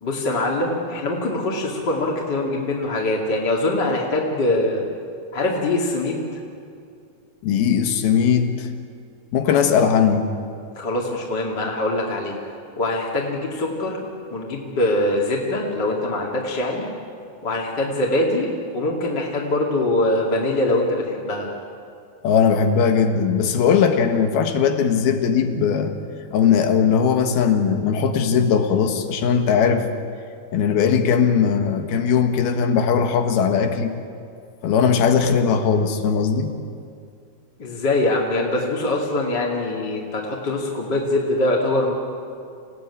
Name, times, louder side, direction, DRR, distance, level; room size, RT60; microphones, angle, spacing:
voice 1, 0.0-4.8 5.3-6.4 10.8-12.4 12.8-14.0 14.3-16.9 17.4-18.5 18.7-21.5 37.6-41.9, left 2 dB, 30° left, -3 dB, 2.7 m, -23 dB
voice 2, 7.4-8.7 9.3-10.3 22.2-25.9 26.3-29.9 30.5-33.9 34.6-36.5, left 7 dB, 80° left, 6 dB, 3.5 m, -19 dB
27.5 x 17.0 x 9.8 m, 2.3 s
omnidirectional pair, 4.3 m